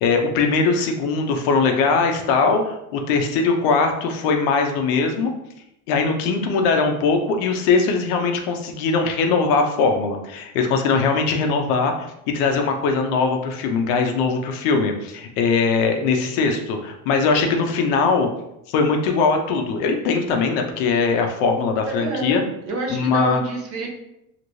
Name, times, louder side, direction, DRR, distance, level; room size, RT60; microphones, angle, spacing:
voice 1, 0.0-5.3 5.9-12.1 12.3-18.3 18.7-22.4 22.9-23.4, left 4 dB, 80° left, 4 dB, 0.6 m, -20 dB
voice 2, 21.8-23.9, right 2 dB, 45° right, 1 dB, 0.7 m, -27 dB
3.0 x 2.9 x 2.6 m, 0.82 s
cardioid pair, 155°, 33 cm